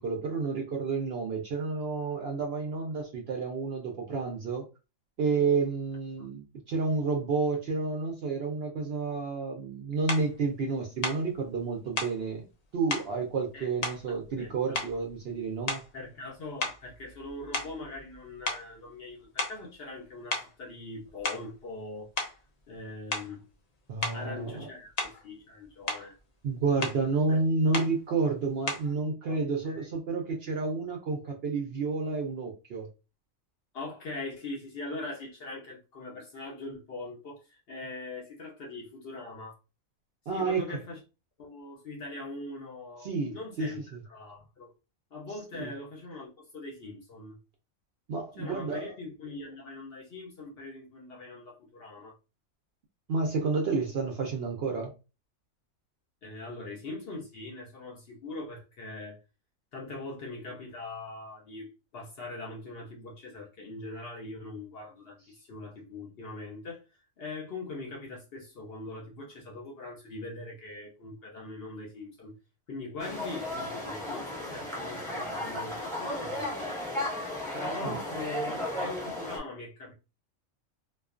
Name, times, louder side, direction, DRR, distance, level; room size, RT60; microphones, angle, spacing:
voice 1, 0.0-4.7 5.2-12.5 12.7-15.8 23.9-24.7 26.4-32.9 40.3-40.8 43.0-43.3 43.6-44.0 45.5-45.7 48.1-48.9 53.1-54.9 77.8-78.0, right 4 dB, 65° right, 0.6 m, -30 dB
sound 1, 10.1-10.3 11.0-11.2 12.0-12.2 12.9-13.1 13.8-14.4 14.7-15.1 15.6-16.0 16.6-18.2 18.4-18.7 19.4-19.6 20.3-20.5 21.1-21.5 22.2-22.4 23.1-23.4 24.0-24.2 25.0-25.3 25.6-26.1 26.8-27.0 27.7-28.0 28.7-28.9, left 2 dB, 85° left, 0.3 m, -34 dB
voice 2, 14.4-14.8 15.9-22.1 22.7-23.4 24.1-26.1 27.3-27.4 29.3-29.4 29.6-29.9 33.7-39.6 40.3-41.0 41.4-43.8 44.1-44.7 45.1-47.4 48.4-52.2 56.2-59.2 59.7-66.8 67.2-72.3 72.7-76.7 77.5-79.9, left 2 dB, 55° left, 0.7 m, -42 dB
sound 2, 73.0-79.4, left 1 dB, 5° left, 0.9 m, -35 dB
2.3 x 2.2 x 2.4 m
omnidirectional pair, 1.4 m